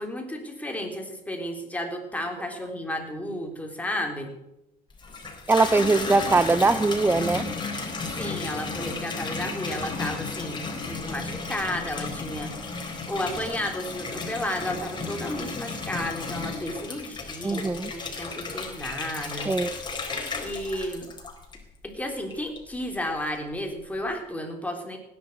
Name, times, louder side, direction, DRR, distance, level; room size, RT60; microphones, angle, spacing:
voice 1, 0.0-4.3 8.2-12.8 13.1-19.5 20.4-21.1 21.8-25.0, left 1 dB, 10° left, 2 dB, 3.5 m, -33 dB
Water tap faucet / Bathtub (filling or washing), 4.9-21.8 22.3-22.9, left 4 dB, 25° left, 4.1 m, -34 dB
voice 2, 5.5-7.5 17.4-17.9 19.4-19.7, right 3 dB, 15° right, 14 dB, 0.6 m, -21 dB
17.0 x 10.5 x 8.0 m, 0.88 s
cardioid pair, 110°, 17 cm